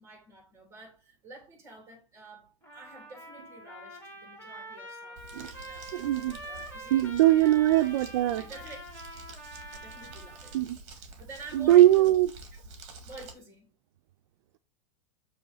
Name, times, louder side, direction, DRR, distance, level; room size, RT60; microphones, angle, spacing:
voice 1, 0.0-5.9 6.4-8.0 8.4-8.8 9.1-9.4 9.7-10.6 10.9-12.2 12.5-12.6 13.0-13.7, right 3 dB, 15° right, 2.9 m, -49 dB
Trumpet, 2.6-10.7, right 1 dB, 10° left, 2.6 m, -45 dB
Crumpling crinkling, 5.2-13.3, right 3 dB, 40° right, 1.7 m, -48 dB
voice 2, 5.9-6.4 6.9-8.4 10.5-10.8 11.5-12.3, right 14 dB, 70° right, 0.5 m, -21 dB
6.7 x 3.1 x 5.3 m
supercardioid pair, 145°, 17 cm